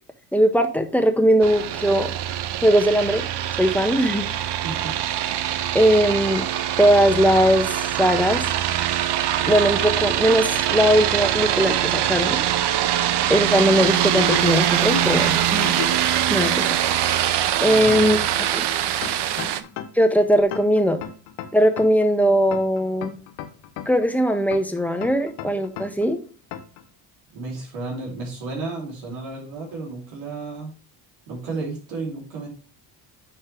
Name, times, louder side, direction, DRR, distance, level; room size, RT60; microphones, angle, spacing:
voice 1, 0.3-2.1 2.6-3.3 3.6-4.3 5.7-6.4 6.8-8.4 9.5-12.5 13.3-15.7 16.3-16.7 17.6-18.2 18.5-18.6 19.9-21.0 21.5-23.2 23.8-26.2, equal, 5° left, 5 dB, 1.4 m, -19 dB
sound 1, 1.4-19.6, right 11 dB, 60° right, 0.8 m, -23 dB
sound 2, 11.3-11.4 11.7-11.8 14.0-16.1, left 9 dB, 45° left, 1.2 m, -32 dB
voice 2, 17.6-18.1 27.3-30.7 31.3-32.5, right 3 dB, 80° right, -2 dB, 3.4 m, -32 dB
sound 3, 19.0-20.1 20.5-22.1 22.5-24.1 24.5-26.1 26.5-26.8, left 10 dB, 75° left, 1.0 m, -35 dB
9.7 x 4.6 x 3.3 m, 0.38 s
hypercardioid pair, 55°, 47 cm